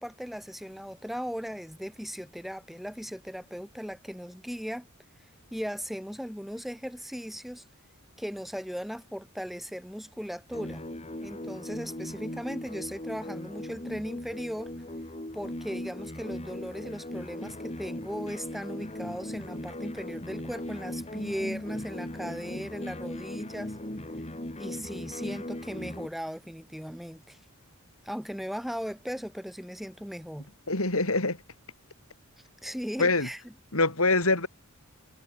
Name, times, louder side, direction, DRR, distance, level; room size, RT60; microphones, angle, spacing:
voice 1, 0.0-4.9 5.5-7.7 8.2-10.8 11.2-14.7 15.3-23.8 24.6-27.4 28.0-30.5 32.6-33.4, equal, ahead, 2.0 m, -37 dB
sound 1, 10.5-26.1, left 1 dB, 30° left, 2.9 m, -38 dB
voice 2, 30.7-31.4 33.0-33.3 33.7-34.5, left 3 dB, 70° left, 5.9 m, -24 dB
head